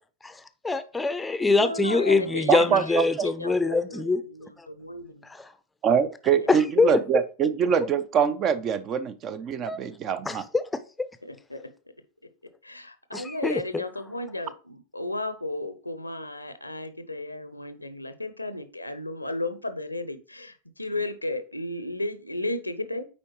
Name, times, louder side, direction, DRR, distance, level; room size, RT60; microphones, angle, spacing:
voice 1, 0.2-4.2 4.6-4.7 6.5-6.9 9.6-9.8 10.3-10.6 13.1-13.8, left 3 dB, 10° left, 12 dB, 0.6 m, -24 dB
voice 2, 1.6-5.2 6.3-6.5 11.2-11.6 12.6-23.1, left 2 dB, 85° left, 11 dB, 0.7 m, -34 dB
voice 3, 2.5-3.3 3.7-3.8 5.8-10.4, right 7 dB, 30° right, 14 dB, 0.6 m, -24 dB
8.5 x 4.5 x 3.0 m, 0.36 s
figure-of-eight pair, 90°, 0 cm